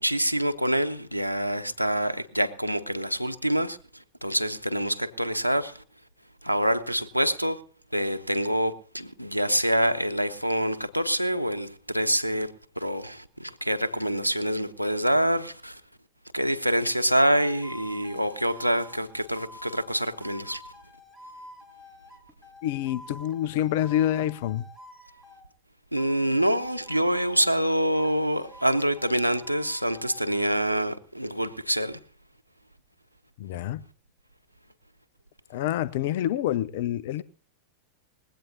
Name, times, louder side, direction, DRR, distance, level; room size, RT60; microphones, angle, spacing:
voice 1, 0.0-5.8 6.4-7.6 7.9-15.8 16.3-20.6 25.9-32.0, equal, 90° left, 1.0 m, -26 dB
sound 1, 17.2-25.5 26.0-27.7 27.9-30.6, left 1 dB, ahead, 3.2 m, -48 dB
voice 2, 22.6-24.7 33.4-33.8 35.5-37.2, left 12 dB, 50° left, 0.7 m, -27 dB
20.5 x 17.0 x 2.8 m
figure-of-eight pair, 90°, 0 cm